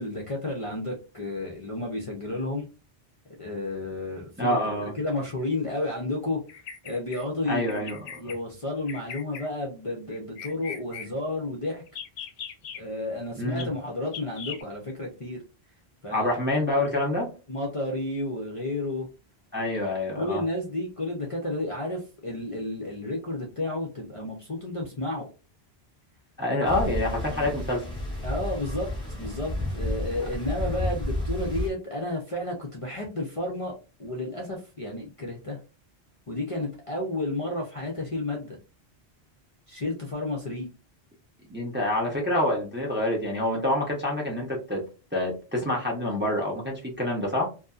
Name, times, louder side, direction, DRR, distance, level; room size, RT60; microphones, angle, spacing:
voice 1, 0.0-2.7 3.4-4.6 4.9-6.4 6.8-7.7 8.2-11.8 12.8-15.4 16.0-16.3 17.5-19.1 20.2-25.3 26.6-26.7 28.2-28.9 29.2-33.7 34.0-35.6 36.3-38.6 39.7-40.7, left 2 dB, 40° left, -1 dB, 0.6 m, -31 dB
voice 2, 4.4-4.9 7.5-8.2 13.4-13.7 16.1-17.3 19.5-20.4 26.4-27.8 41.5-44.8 45.1-47.5, left 1 dB, 15° right, -2 dB, 0.6 m, -27 dB
Bird vocalization bird call bird song, 6.5-7.2 7.7-8.4 8.9-9.5 10.1-11.1 11.9-12.8 13.6-13.7 14.1-14.6, left 7 dB, 80° left, 0.8 m, -39 dB
sound 1, 26.6-31.7, left 1 dB, 5° left, 0.9 m, -31 dB
2.7 x 2.6 x 2.4 m, 0.32 s
omnidirectional pair, 1.1 m